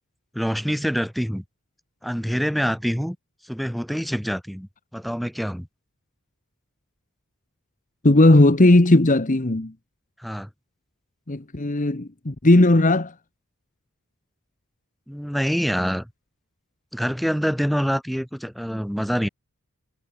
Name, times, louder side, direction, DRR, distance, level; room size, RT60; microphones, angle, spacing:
voice 1, 0.3-1.4 2.0-3.2 3.5-5.7 10.2-10.5 15.1-16.1 16.9-19.3, equal, ahead, 2.9 m, -26 dB
voice 2, 8.0-9.7 11.3-13.1, left 2 dB, 35° left, 1.2 m, -16 dB
head